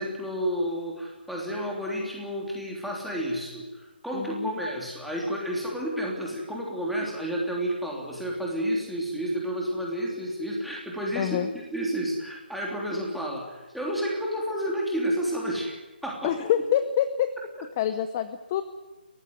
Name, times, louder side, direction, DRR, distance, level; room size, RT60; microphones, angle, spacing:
voice 1, 0.0-15.7 16.0-16.4, equal, ahead, -3 dB, 3.2 m, -30 dB
voice 2, 4.1-4.6 11.2-11.5 16.2-17.3 17.8-18.6, left 10 dB, 20° left, 11 dB, 0.8 m, -26 dB
30.0 x 15.0 x 9.5 m, 1.2 s
hypercardioid pair, 170°, 6 cm